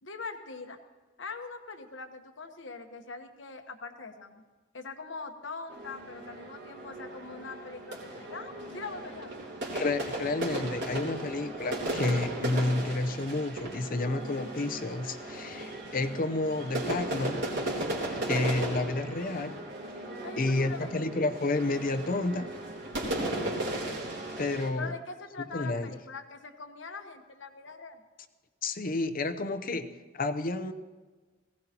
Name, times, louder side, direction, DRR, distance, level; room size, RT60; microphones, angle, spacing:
voice 1, 0.0-0.8 1.2-4.4 4.7-9.4 20.2-20.9 24.8-28.0, left 4 dB, 75° left, 6 dB, 1.2 m, -42 dB
sound 1, 5.7-24.7, right 1 dB, 70° right, 3.3 m, -36 dB
voice 2, 9.7-17.4 18.3-19.6 20.4-22.5 24.4-24.9 25.5-25.9 28.6-30.7, left 2 dB, 50° left, 11 dB, 0.7 m, -30 dB
19.5 x 17.0 x 2.9 m, 1.3 s
head